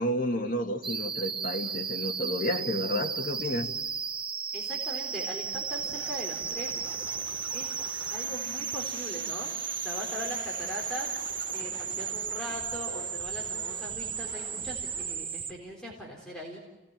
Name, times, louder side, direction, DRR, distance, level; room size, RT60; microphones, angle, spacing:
voice 1, 0.0-3.7, equal, 45° left, 3 dB, 2.0 m, -31 dB
sound 1, 0.8-15.5, right 6 dB, 25° right, 1.0 m, -34 dB
voice 2, 4.5-6.7 7.5-7.7 8.1-11.1 11.5-16.6, equal, 5° left, -3 dB, 3.8 m, -40 dB
sound 2, 5.7-15.1, left 1 dB, 25° left, 7.5 m, -47 dB
28.5 x 18.5 x 9.0 m, 1.1 s
head